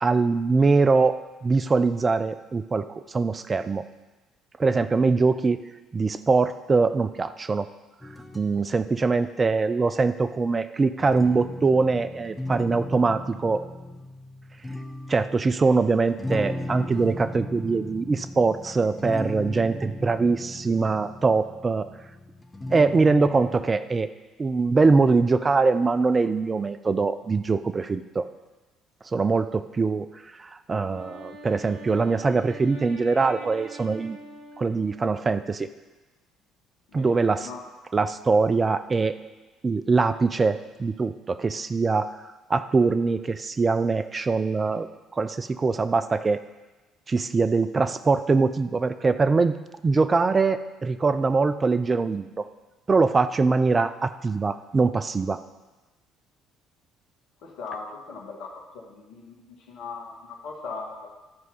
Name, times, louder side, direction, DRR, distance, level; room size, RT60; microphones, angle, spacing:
voice 1, 0.0-3.8 4.6-5.6 5.9-7.7 8.3-13.6 15.1-21.9 22.7-24.1 24.4-28.3 29.1-30.1 30.4-34.2 34.6-35.7 36.9-37.5 37.9-39.1 39.6-42.1 42.5-44.9 45.1-46.4 47.1-49.5 49.8-52.4 52.9-55.4, right 4 dB, 30° right, 12 dB, 0.6 m, -23 dB
sound 1, 8.0-9.1 11.0-23.7, left 1 dB, 15° left, 1.2 m, -37 dB
Wind instrument woodwind instrument, 30.8-35.5, right 2 dB, 75° right, 1.8 m, -44 dB
voice 2, 36.9-37.6 57.4-61.1, left 4 dB, 65° left, 0 dB, 1.9 m, -39 dB
12.5 x 4.7 x 5.5 m, 1.1 s
hypercardioid pair, 55°, 0 cm